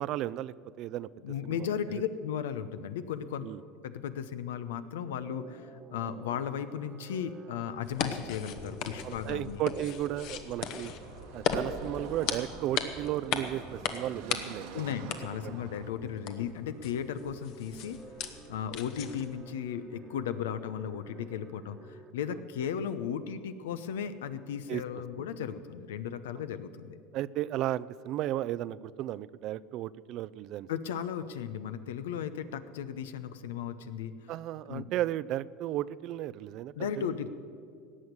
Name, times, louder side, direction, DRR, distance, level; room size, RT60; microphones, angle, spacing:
voice 1, 0.0-1.1 1.4-1.7 3.4-3.6 9.0-10.9 11.3-14.8 15.4-15.6 24.7-24.8 25.2-25.3 26.4-26.5 27.1-30.7 34.3-37.1, right 13 dB, 55° right, 18 dB, 0.4 m, -34 dB
voice 2, 1.2-3.5 3.8-9.6 14.7-18.0 18.5-27.0 30.7-34.3 34.7-34.9 36.8-37.3, left 8 dB, 85° left, 12 dB, 0.8 m, -36 dB
sound 1, 4.9-22.1, right 5 dB, 30° right, 1.2 m, -52 dB
sound 2, 7.8-19.4, left 7 dB, 60° left, 1.2 m, -38 dB
Car passing by / Traffic noise roadway noise, 10.8-15.9, right 6 dB, 75° right, 1.3 m, -47 dB
17.5 x 6.4 x 9.6 m, 2.4 s
supercardioid pair, 100°, 0 cm